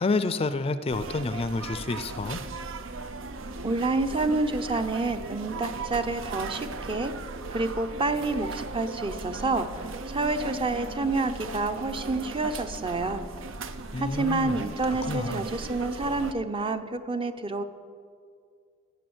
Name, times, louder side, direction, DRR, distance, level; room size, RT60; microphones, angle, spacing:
voice 1, 0.0-2.4 13.9-14.6 15.1-15.5, left 3 dB, 30° left, 12 dB, 0.4 m, -29 dB
sound 1, 0.9-16.3, right 3 dB, 80° right, 0.7 m, -37 dB
voice 2, 3.6-7.1 7.5-9.7 10.1-13.2 14.0-17.6, right 3 dB, 25° right, 9 dB, 0.6 m, -28 dB
15.5 x 7.0 x 7.8 m, 2.2 s
head